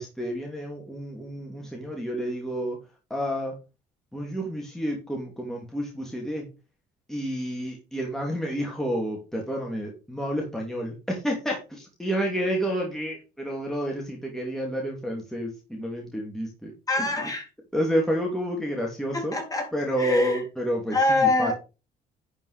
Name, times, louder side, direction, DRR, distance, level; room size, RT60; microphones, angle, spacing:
voice 1, 0.0-2.8 3.1-3.6 4.1-6.5 7.1-17.1 17.7-19.4 19.7-21.5, equal, ahead, -1 dB, 2.8 m, -29 dB
voice 2, 16.9-17.5 19.1-19.7 20.0-20.4 20.9-21.5, left 2 dB, 20° left, 2 dB, 3.7 m, -24 dB
11.0 x 5.4 x 5.1 m, 0.30 s
cardioid pair, 110°, 17 cm